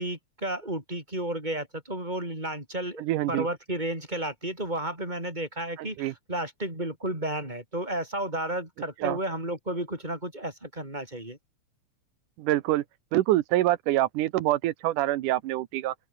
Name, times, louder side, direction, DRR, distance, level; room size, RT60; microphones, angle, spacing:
voice 1, 0.0-11.4, right 1 dB, 15° right, 8.1 m, -32 dB
voice 2, 3.0-3.5 5.8-6.1 9.0-9.2 12.4-12.8 13.1-15.9, right 15 dB, 85° right, 2.5 m, -25 dB
open air
omnidirectional pair, 3.5 m